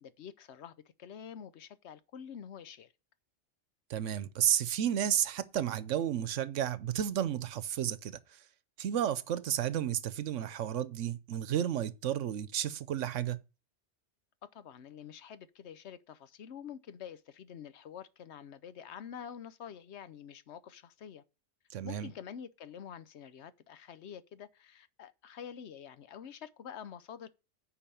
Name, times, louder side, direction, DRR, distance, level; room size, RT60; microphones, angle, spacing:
voice 1, 0.0-0.7 1.0-2.9 14.4-21.2 21.8-27.3, left 8 dB, 70° left, 1.0 m, -47 dB
voice 2, 3.9-8.2 8.8-13.4 21.7-22.1, right 10 dB, 85° right, 1.1 m, -32 dB
8.8 x 4.8 x 6.9 m
omnidirectional pair, 1.2 m